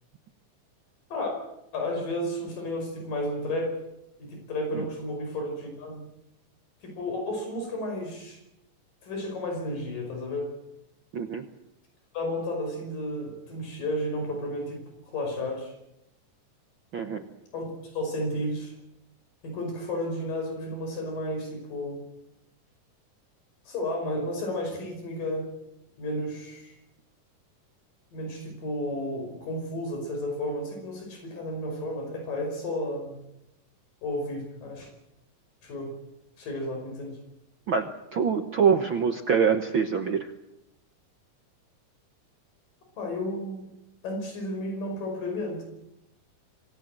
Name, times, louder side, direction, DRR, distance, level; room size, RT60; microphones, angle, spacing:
voice 1, 1.7-3.9 4.2-6.1 6.8-8.4 9.0-10.5 12.1-15.7 17.5-18.7 19.4-22.0 23.7-25.5 26.0-26.8 28.1-33.2 34.0-34.9 35.6-35.9 36.4-37.2 43.0-43.7 44.0-45.6, left 1 dB, 80° left, 3 dB, 7.0 m, -32 dB
voice 2, 11.1-11.4 16.9-17.2 37.7-40.3, right 6 dB, 60° right, 6 dB, 1.3 m, -25 dB
26.5 x 18.0 x 7.7 m, 0.86 s
omnidirectional pair, 3.8 m